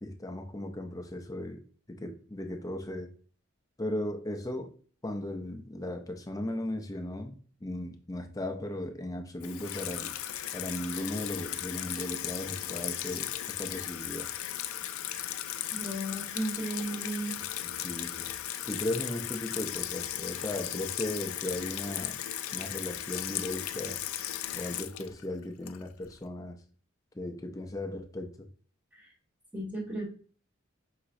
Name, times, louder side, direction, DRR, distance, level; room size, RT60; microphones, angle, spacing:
voice 1, 0.0-1.6 1.9-3.1 3.8-4.7 5.0-7.3 7.6-10.1 10.5-14.3 17.6-18.3 18.6-22.2 22.5-24.0 24.5-26.6 27.1-28.5, left 1 dB, 15° left, 0.4 m, -37 dB
Water tap faucet / Sink (filling or washing), 9.4-26.1, left 12 dB, 80° left, 0.4 m, -36 dB
voice 2, 15.7-17.4 29.5-30.1, right 1 dB, 10° right, 1.4 m, -35 dB
5.7 x 3.0 x 2.5 m
head